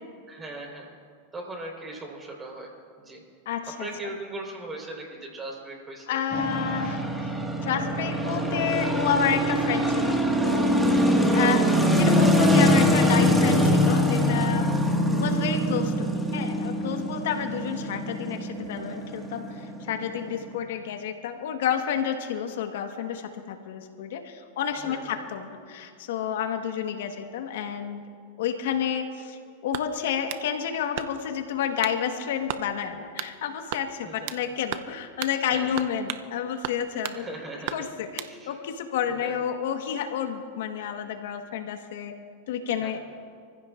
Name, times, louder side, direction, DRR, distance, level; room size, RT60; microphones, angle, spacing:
voice 1, 0.3-1.0 1.3-2.7 3.0-3.2 3.8-6.2 24.8-25.2 34.0-34.3 35.5-35.7 37.1-37.9 38.2-38.6 39.2-39.3 42.8-42.9, right 2 dB, 20° right, 0 dB, 4.3 m, -39 dB
voice 2, 3.4-3.9 6.1-7.3 7.6-11.0 11.3-14.7 15.2-28.0 28.4-37.3 37.7-42.1 42.5-43.0, left 8 dB, 70° left, 5 dB, 1.4 m, -30 dB
sound 1, 6.3-20.5, equal, 5° right, 1.8 m, -23 dB
Opening Closing Container, 29.7-30.5 31.0-31.4 31.8-32.0 32.5-32.7 33.2-33.4 33.7-34.4 34.7-34.9 35.2-35.4 35.8-36.3 36.6-37.2 37.7-38.3, right 12 dB, 65° right, 0.6 m, -35 dB
27.0 x 15.5 x 2.5 m, 2.1 s
hypercardioid pair, 115°, 0 cm